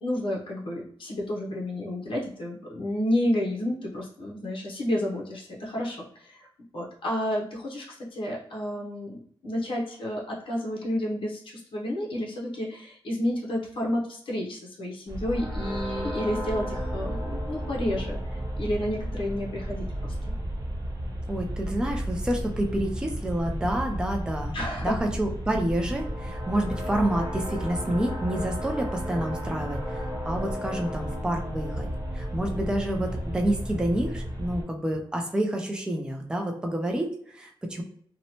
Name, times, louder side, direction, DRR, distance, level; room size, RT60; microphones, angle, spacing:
voice 1, 0.0-6.5 6.7-20.3 24.5-25.0, left 1 dB, 70° left, -3 dB, 0.7 m, -31 dB
sound 1, 15.1-34.6, equal, 45° right, 0.8 m, -33 dB
voice 2, 21.3-24.5 24.8-31.9 32.1-37.8, right 1 dB, 10° right, 2 dB, 0.4 m, -29 dB
2.8 x 2.1 x 2.7 m, 0.64 s
wide cardioid pair, 165°, 9 cm